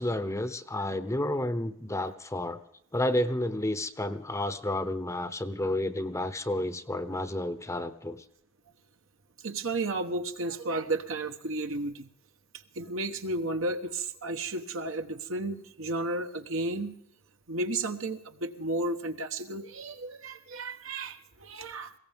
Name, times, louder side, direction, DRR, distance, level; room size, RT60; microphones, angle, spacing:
voice 1, 0.0-2.6 2.9-8.2, left 1 dB, 15° left, 10 dB, 0.8 m, -31 dB
voice 2, 9.4-12.1 12.7-17.0 17.5-21.9, right 2 dB, 70° right, 6 dB, 1.2 m, -33 dB
20.5 x 17.0 x 3.5 m, 0.70 s
head